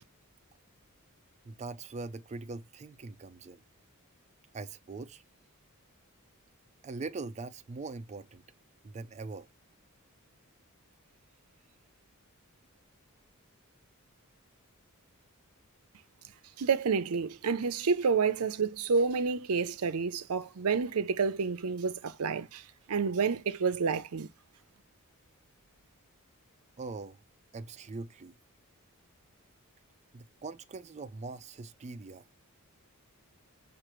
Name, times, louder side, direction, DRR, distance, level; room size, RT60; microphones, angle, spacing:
voice 1, 1.5-3.6 4.5-5.2 6.8-8.4 8.8-9.5 26.8-27.2 27.5-28.3 30.1-32.2, right 3 dB, 30° right, 0.4 m, -42 dB
voice 2, 16.6-24.3, right 5 dB, 80° right, 0.6 m, -29 dB
6.0 x 2.5 x 3.0 m
head